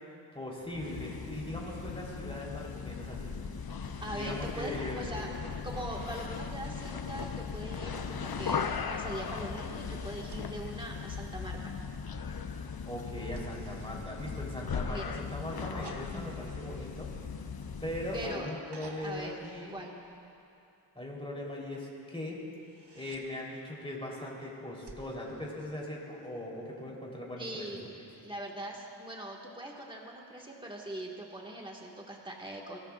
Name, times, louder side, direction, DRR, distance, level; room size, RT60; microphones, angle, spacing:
voice 1, 0.0-3.4 4.1-5.3 12.9-17.1 17.8-19.7 20.9-22.4 22.9-27.8, left 1 dB, 15° left, -4 dB, 3.6 m, -40 dB
sound 1, 0.7-18.4, left 6 dB, 55° left, 0.7 m, -38 dB
voice 2, 4.0-11.7 14.9-15.1 18.1-18.5 19.0-19.4 19.7-19.9 27.4-27.9 28.2-32.8, right 1 dB, 10° right, -2 dB, 1.7 m, -41 dB
sound 2, 10.2-11.8 13.3-15.0 15.8-18.1 18.7-20.5 22.5-23.3 24.8-26.3 27.9-28.0, right 2 dB, 65° right, 1.4 m, -53 dB
22.5 x 18.0 x 2.5 m, 2.7 s
wide cardioid pair, 65°, 44 cm